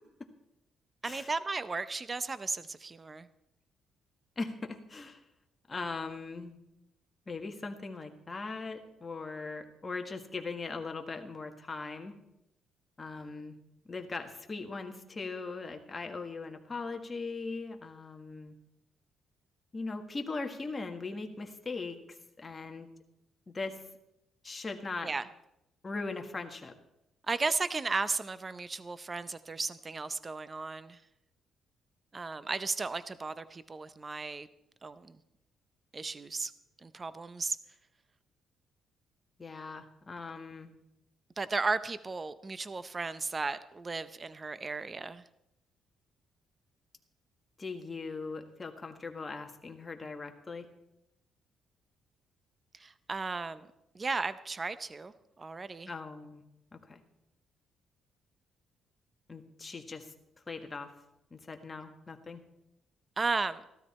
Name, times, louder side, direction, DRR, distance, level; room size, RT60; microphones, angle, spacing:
voice 1, 1.0-3.3 25.0-25.2 27.3-31.0 32.1-34.5 34.8-35.2 35.9-36.5 36.8-37.6 41.4-45.2 52.7-53.7 53.9-55.9 63.2-63.6, right 4 dB, 30° right, 14 dB, 0.7 m, -35 dB
voice 2, 4.4-5.2 5.7-6.6 7.3-12.1 13.0-13.6 13.9-18.6 19.7-22.9 23.5-23.8 24.4-25.1 25.8-26.7 39.4-40.7 47.6-50.7 55.9-56.4 56.7-57.0 59.3-60.1 60.5-60.9 61.3-62.4, left 3 dB, 25° left, 4 dB, 1.7 m, -40 dB
15.0 x 13.0 x 4.3 m, 0.85 s
cardioid pair, 90°, 0 cm